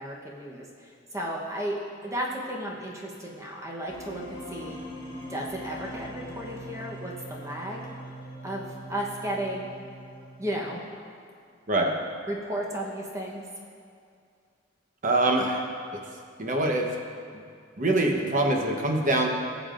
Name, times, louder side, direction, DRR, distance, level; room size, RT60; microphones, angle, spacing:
voice 1, 0.0-4.8 5.3-7.9 8.4-9.7 10.4-10.8 12.3-13.4, right 1 dB, 15° right, -2 dB, 1.0 m, -34 dB
sound 1, 3.9-10.9, equal, 25° left, 2.6 m, -42 dB
voice 2, 15.0-15.7 16.4-16.9 17.8-19.3, right 2 dB, 45° right, 1 dB, 1.0 m, -24 dB
19.0 x 7.2 x 2.5 m, 2.3 s
head